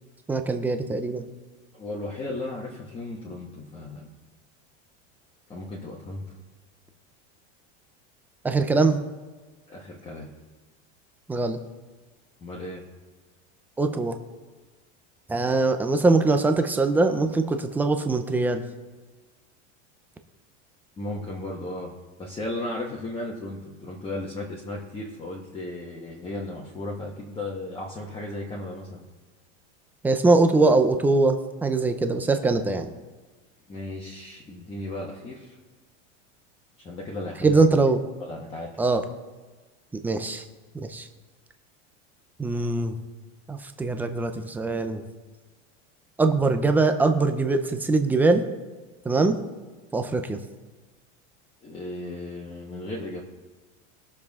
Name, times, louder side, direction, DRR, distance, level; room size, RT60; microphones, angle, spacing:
voice 1, 0.3-1.3 8.4-9.1 11.3-11.6 13.8-14.2 15.3-18.6 30.0-32.9 37.4-38.0 38.8-39.0 39.9-40.4 40.7-41.1 42.4-42.9 43.5-45.0 46.2-48.4 49.0-49.4 49.9-50.4, right 3 dB, 5° right, 7 dB, 0.4 m, -22 dB
voice 2, 1.7-4.1 5.5-6.2 9.7-10.3 12.4-12.8 21.0-21.9 22.2-29.0 33.7-35.6 36.8-37.6 38.2-38.7 51.6-53.2, left 2 dB, 15° left, -3 dB, 1.3 m, -35 dB
20.5 x 7.1 x 3.6 m, 1.3 s
supercardioid pair, 160°, 36 cm